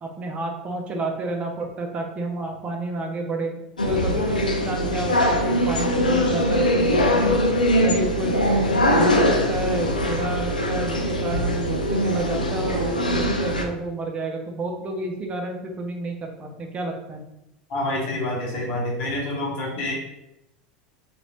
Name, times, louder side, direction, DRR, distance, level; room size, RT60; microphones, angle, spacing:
voice 1, 0.0-3.5 3.9-7.4 7.8-17.2, right 2 dB, 30° right, 2 dB, 0.6 m, -30 dB
sound 1, 3.8-13.6, equal, 90° left, 0.4 m, -22 dB
voice 2, 17.7-19.9, left 1 dB, 50° left, -3 dB, 1.1 m, -27 dB
2.9 x 2.4 x 3.0 m, 0.88 s
figure-of-eight pair, 80°, 4 cm